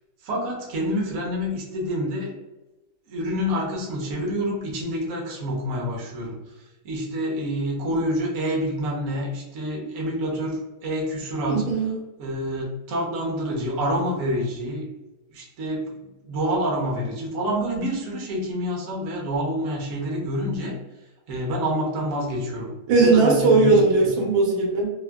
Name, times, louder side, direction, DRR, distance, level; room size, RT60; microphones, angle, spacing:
voice 1, 0.2-2.3 3.1-11.6 12.2-14.8 15.3-20.7 21.3-22.7 23.0-24.1, equal, 60° right, -3 dB, 0.9 m, -27 dB
voice 2, 11.5-11.9 22.9-24.9, right 3 dB, 80° right, -2 dB, 1.5 m, -18 dB
3.5 x 2.1 x 2.2 m, 1.1 s
omnidirectional pair, 2.2 m